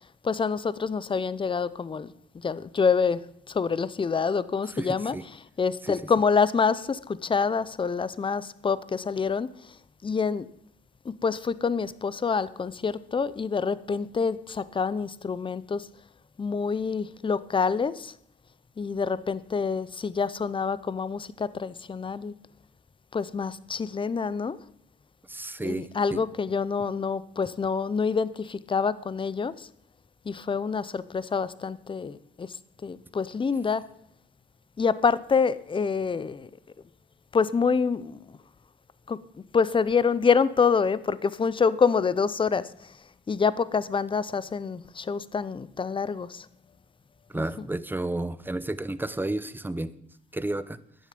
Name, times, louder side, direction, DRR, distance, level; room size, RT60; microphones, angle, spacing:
voice 1, 0.2-2.1 2.4-3.2 3.5-5.2 5.6-9.5 10.0-10.5 11.0-15.9 16.4-18.1 18.8-22.3 23.1-24.6 25.6-29.7 30.3-32.5 32.8-33.9 34.8-36.5 37.3-38.2 39.1-39.2 39.5-42.9 43.3-46.5 47.3-47.4, left 5 dB, 25° left, 0.7 m, -26 dB
voice 2, 4.7-5.2 5.8-6.0 25.3-26.2 47.3-50.0 50.3-50.8, right 2 dB, 10° right, 0.8 m, -32 dB
14.5 x 10.0 x 5.3 m
cardioid pair, 90°, 20 cm